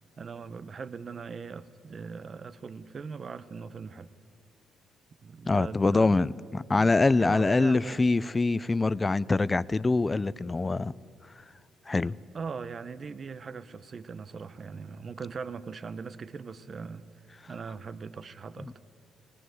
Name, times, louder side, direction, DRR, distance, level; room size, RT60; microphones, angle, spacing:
voice 1, 0.2-4.1 5.2-6.3 6.7-8.0 12.3-17.1 17.5-18.8, right 5 dB, 45° right, 0.9 m, -40 dB
voice 2, 5.5-10.9 11.9-12.2 18.6-18.7, left 3 dB, 25° left, 0.4 m, -24 dB
19.0 x 19.0 x 7.8 m
cardioid pair, 90°, 0 cm